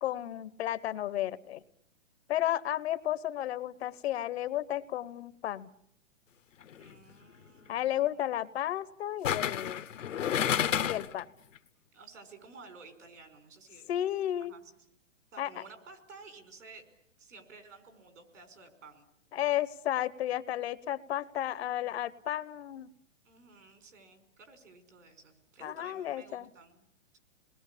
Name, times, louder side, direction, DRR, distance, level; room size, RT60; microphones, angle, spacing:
voice 1, 0.0-1.6 2.3-5.7 7.7-10.0 10.8-11.3 13.9-14.5 15.4-15.6 19.3-22.9 25.6-26.5, left 12 dB, 55° left, 16 dB, 1.0 m, -33 dB
sound 1, 6.6-6.9 9.2-11.2 11.6-11.7, left 9 dB, 80° left, 1.4 m, -30 dB
voice 2, 6.7-8.2 11.9-13.9 14.4-14.6 15.3-16.8 17.2-19.1 23.2-26.8 27.1-27.2, right 4 dB, 80° right, 7 dB, 5.1 m, -53 dB
27.0 x 20.5 x 8.5 m, 0.74 s
hypercardioid pair, 140°, 37 cm